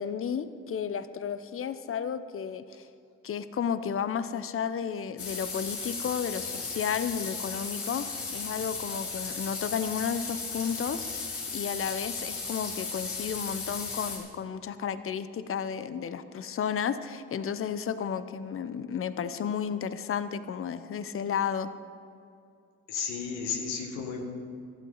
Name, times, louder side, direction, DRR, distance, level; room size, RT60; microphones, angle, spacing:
voice 1, 0.0-2.9 3.2-21.7, left 7 dB, 45° left, 13 dB, 0.8 m, -33 dB
sound 1, 5.2-14.2, left 4 dB, 65° left, 3.2 m, -36 dB
voice 2, 22.9-24.2, left 6 dB, 85° left, 3 dB, 1.6 m, -33 dB
15.5 x 12.0 x 4.0 m, 2.5 s
hypercardioid pair, 55°, 32 cm